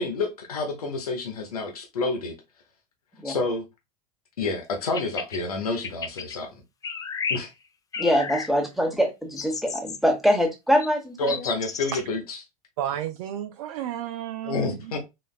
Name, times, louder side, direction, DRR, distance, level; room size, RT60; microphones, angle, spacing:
voice 1, 0.0-2.4 3.2-3.6 4.4-6.6 7.3-7.5 11.2-12.4 14.4-15.0, left 3 dB, 85° left, 0.8 m, -29 dB
sound 1, 4.8-5.4 5.8-6.4 6.8-7.4 7.9-8.5 9.4-10.0 10.8-10.9 11.3-12.0, left 5 dB, 20° left, 0.4 m, -32 dB
voice 2, 8.0-11.5, equal, ahead, 1.1 m, -23 dB
voice 3, 12.8-15.0, right 11 dB, 65° right, 0.4 m, -32 dB
3.9 x 2.5 x 2.3 m
hypercardioid pair, 90°, 19 cm